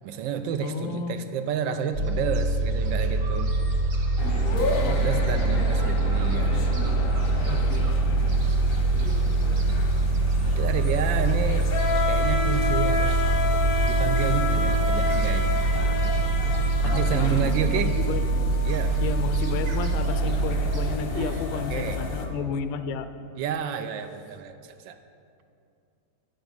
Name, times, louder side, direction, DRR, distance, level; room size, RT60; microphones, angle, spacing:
voice 1, 0.0-3.5 4.5-6.6 7.4-7.6 10.5-11.7 12.1-13.2 13.8-16.2 16.8-17.9 18.6-19.0 21.1-22.0 23.4-25.0, right 7 dB, 80° right, 8 dB, 1.2 m, -30 dB
voice 2, 0.6-1.2 4.8-5.9 7.4-8.1 16.9-18.2 19.0-23.1, left 6 dB, 80° left, 10 dB, 1.3 m, -33 dB
Gull seagull, 1.9-20.9, right 3 dB, 55° right, 1.6 m, -24 dB
sound 1, 4.2-22.3, left 4 dB, 45° left, 0.7 m, -31 dB
8.9 x 8.1 x 5.2 m, 2.5 s
omnidirectional pair, 2.1 m